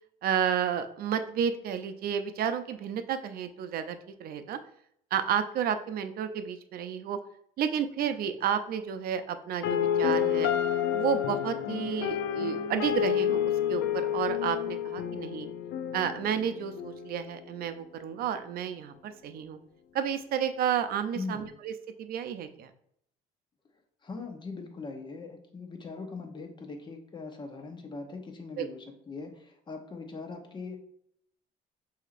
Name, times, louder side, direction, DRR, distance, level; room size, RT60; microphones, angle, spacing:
voice 1, 0.2-4.6 5.1-7.2 7.6-10.5 10.9-15.5 15.9-19.6 19.9-21.7 22.0-22.7 28.6-28.7, right 8 dB, 60° right, 10 dB, 0.5 m, -31 dB
sound 1, 9.6-17.6, left 9 dB, 80° left, 0.4 m, -29 dB
voice 2, 21.1-21.5 24.0-30.8, left 4 dB, 25° left, 4 dB, 0.9 m, -40 dB
6.1 x 2.8 x 2.5 m, 0.70 s
cardioid pair, 110°, 17 cm